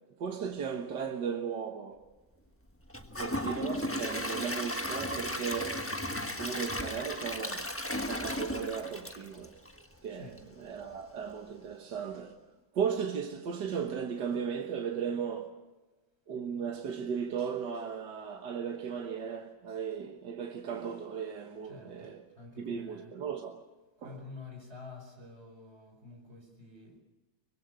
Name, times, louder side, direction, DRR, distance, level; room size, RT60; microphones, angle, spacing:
voice 1, 0.2-2.0 3.2-5.9 6.4-7.7 8.0-9.6 10.0-10.3 10.6-12.4 12.7-15.6 16.3-22.2 22.6-23.6 24.0-24.2, right 7 dB, 80° right, 1.9 m, -36 dB
Gurgling / Toilet flush / Trickle dribble, 2.9-10.0 10.4-10.5 10.9-11.0, left 1 dB, 10° left, 1.2 m, -35 dB
voice 2, 10.1-10.5 21.6-23.1 24.0-27.0, left 3 dB, 35° right, 5.4 m, -49 dB
24.5 x 20.5 x 8.0 m
omnidirectional pair, 1.8 m